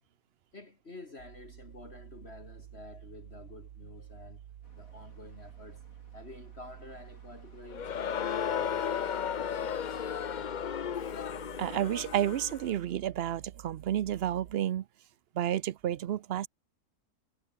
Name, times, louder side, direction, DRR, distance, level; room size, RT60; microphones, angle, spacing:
voice 1, 0.5-4.4 4.7-5.9 6.1-9.1 9.4-10.0, left 3 dB, 40° left, 3.1 m, -50 dB
sound 1, 1.2-14.6, right 11 dB, 85° right, 1.5 m, -50 dB
sound 2, 4.6-10.4, left 1 dB, 60° left, 8.7 m, -64 dB
Crowd, 7.7-12.7, left 8 dB, 80° left, 0.4 m, -34 dB
voice 2, 11.6-14.8 15.3-16.5, right 11 dB, 70° right, 0.6 m, -31 dB
omnidirectional pair, 1.7 m